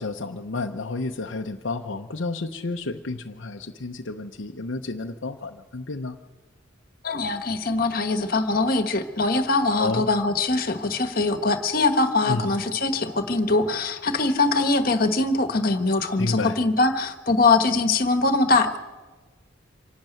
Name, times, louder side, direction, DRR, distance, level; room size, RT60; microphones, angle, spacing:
voice 1, 0.0-6.2 9.8-10.0 12.3-12.5 16.2-16.6, left 3 dB, 70° left, 3 dB, 0.8 m, -31 dB
voice 2, 7.0-18.8, left 3 dB, 45° left, 9 dB, 1.4 m, -22 dB
25.5 x 12.0 x 9.2 m, 1.3 s
head